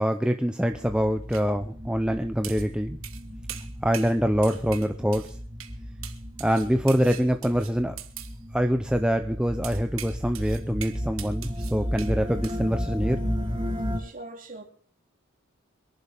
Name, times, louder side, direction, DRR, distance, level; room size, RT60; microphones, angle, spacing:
voice 1, 0.0-3.0 3.8-5.4 6.4-7.9 8.5-13.2, equal, 5° right, 0.6 m, -25 dB
sound 1, 0.7-14.0, equal, 25° right, 4.8 m, -34 dB
sound 2, 1.3-1.4 2.4-2.7 3.0-3.2 3.5-4.2 4.4-5.3 5.6-5.8 6.0-8.3 9.6-12.2 12.4-12.6, right 12 dB, 75° right, 1.4 m, -41 dB
voice 2, 14.0-14.6, right 2 dB, 40° right, 3.0 m, -41 dB
25.5 x 11.0 x 3.5 m
head